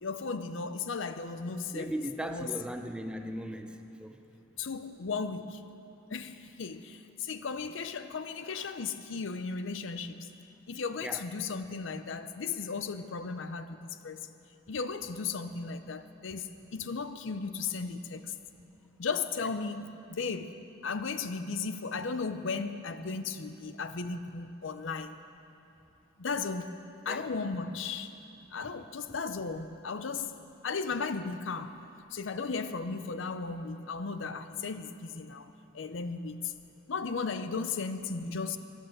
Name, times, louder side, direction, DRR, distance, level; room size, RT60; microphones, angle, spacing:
voice 1, 0.0-2.6 4.6-5.6 6.1-10.3 10.7-14.2 14.7-18.3 19.0-25.2 26.2-26.7 27.1-28.1 28.5-30.3 30.6-31.8 32.1-36.5 36.9-38.6, left 4 dB, 70° left, 10 dB, 0.6 m, -35 dB
voice 2, 1.7-4.2 11.0-11.2 27.1-27.2, equal, 5° right, 6 dB, 0.6 m, -38 dB
13.5 x 11.5 x 6.6 m, 2.8 s
head